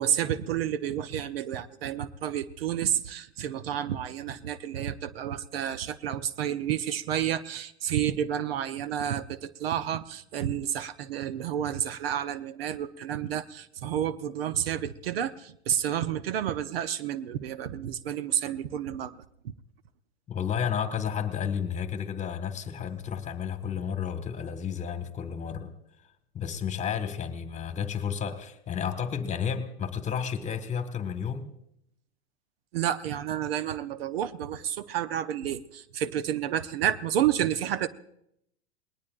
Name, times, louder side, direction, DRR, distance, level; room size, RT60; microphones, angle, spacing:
voice 1, 0.0-19.1 19.4-19.5 32.7-37.9, right 10 dB, 65° right, 14 dB, 0.8 m, -30 dB
voice 2, 20.3-25.7 26.3-31.5, left 7 dB, 20° left, 9 dB, 1.7 m, -32 dB
28.5 x 20.0 x 2.5 m, 0.74 s
figure-of-eight pair, 95°, 33 cm